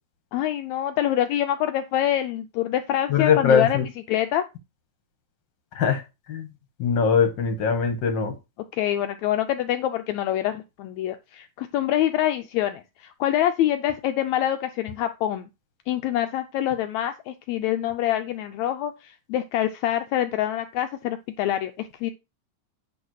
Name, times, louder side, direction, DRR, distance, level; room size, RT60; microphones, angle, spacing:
voice 1, 0.3-4.5 8.7-15.5 15.9-22.1, left 12 dB, 85° left, 1.6 m, -25 dB
voice 2, 3.1-3.8 5.7-6.0 6.3-6.5 6.8-8.3, left 6 dB, 55° left, 1.3 m, -21 dB
9.6 x 3.2 x 6.3 m
omnidirectional pair, 3.8 m